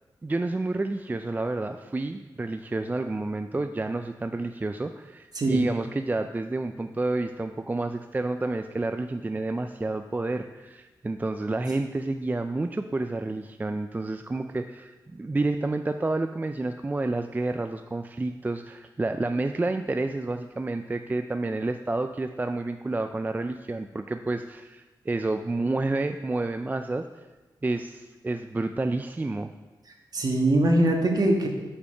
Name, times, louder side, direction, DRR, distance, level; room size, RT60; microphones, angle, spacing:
voice 1, 0.2-27.1 27.6-29.5, right 2 dB, 20° right, 7 dB, 0.3 m, -29 dB
voice 2, 30.1-31.5, right 1 dB, 50° right, 1 dB, 1.5 m, -22 dB
6.4 x 5.7 x 5.6 m, 1.2 s
cardioid pair, 65°, 8 cm